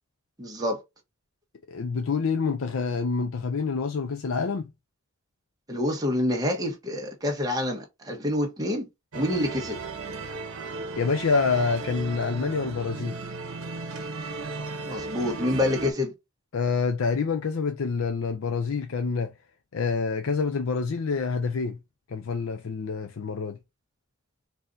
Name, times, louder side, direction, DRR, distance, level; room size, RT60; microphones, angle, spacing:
voice 1, 0.4-0.8 5.7-8.9 9.1-9.8 14.9-16.1, left 1 dB, 20° right, 1.2 m, -27 dB
voice 2, 1.7-4.7 11.0-13.2 16.5-19.3 19.7-21.8 22.1-23.6, left 4 dB, 80° left, 0.5 m, -27 dB
sound 1, 9.1-15.9, right 3 dB, 85° right, 0.9 m, -35 dB
4.2 x 2.7 x 3.8 m
head